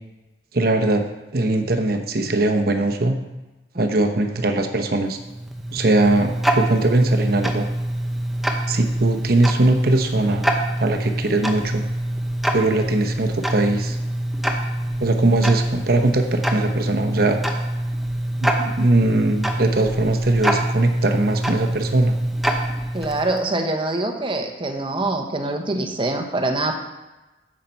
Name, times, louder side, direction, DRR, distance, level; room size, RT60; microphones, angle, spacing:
voice 1, 0.5-1.0 1.3-3.2 3.8-5.2 5.7-7.7 8.7-10.5 10.8-11.8 12.5-14.0 15.0-17.4 18.4-22.1, right 2 dB, 55° right, 5 dB, 0.9 m, -20 dB
Tick-tock, 5.1-23.5, right 1 dB, ahead, 0.8 m, -25 dB
voice 2, 22.9-26.8, right 2 dB, 30° right, 4 dB, 1.0 m, -24 dB
9.5 x 7.4 x 4.5 m, 1.1 s
head